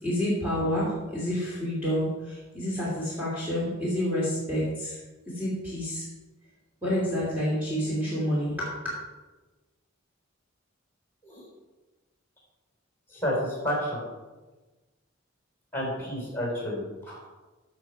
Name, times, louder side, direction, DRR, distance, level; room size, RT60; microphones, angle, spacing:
voice 1, 0.0-5.0 5.3-6.1 6.8-8.9, equal, 10° right, -8 dB, 2.8 m, -29 dB
voice 2, 13.1-14.0 15.7-17.3, equal, 10° left, -2 dB, 4.0 m, -30 dB
13.0 x 6.7 x 4.7 m, 1.2 s
head